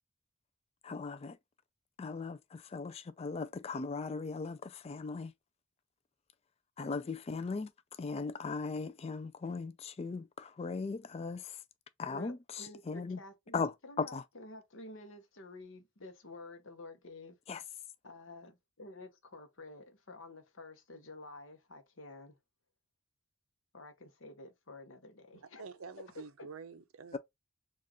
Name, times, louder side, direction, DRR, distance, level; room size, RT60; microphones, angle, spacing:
voice 1, 0.8-1.4 2.0-5.3 6.8-7.7 8.0-11.6 12.0-13.2 13.5-14.2 17.5-17.6, left 4 dB, 25° left, 0.3 m, -38 dB
voice 2, 12.1-17.4 18.0-22.4 23.7-25.6, left 2 dB, 55° left, 0.9 m, -51 dB
voice 3, 25.3-27.2, right 5 dB, 70° right, 0.6 m, -48 dB
4.4 x 2.4 x 2.9 m
head